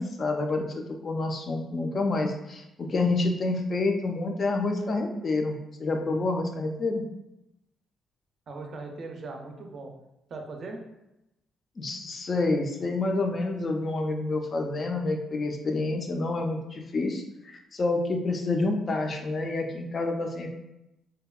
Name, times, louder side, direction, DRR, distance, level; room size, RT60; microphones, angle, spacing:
voice 1, 0.0-7.0 11.8-20.5, left 2 dB, 40° left, 3 dB, 0.4 m, -28 dB
voice 2, 6.0-6.3 8.5-9.9 10.3-10.8, right 3 dB, 55° right, 3 dB, 0.4 m, -39 dB
2.6 x 2.1 x 2.3 m, 0.89 s
cardioid pair, 90°, 0 cm